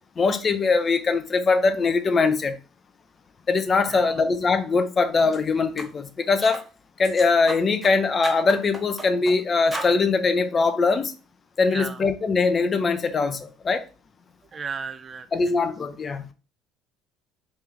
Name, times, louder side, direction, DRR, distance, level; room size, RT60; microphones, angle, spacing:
voice 1, 0.2-2.6 3.5-6.6 7.0-11.1 11.6-13.8 15.3-16.2, left 4 dB, 35° left, 0.5 m, -22 dB
voice 2, 3.9-4.2 11.7-12.0 14.5-15.5, right 5 dB, 35° right, 0.4 m, -35 dB
sound 1, 5.2-5.4 5.8-5.9 6.4-6.7 7.0-7.9 8.2-9.4 9.7-10.0, right 2 dB, 15° right, 0.9 m, -35 dB
3.2 x 3.2 x 3.5 m
hypercardioid pair, 60°, 0 cm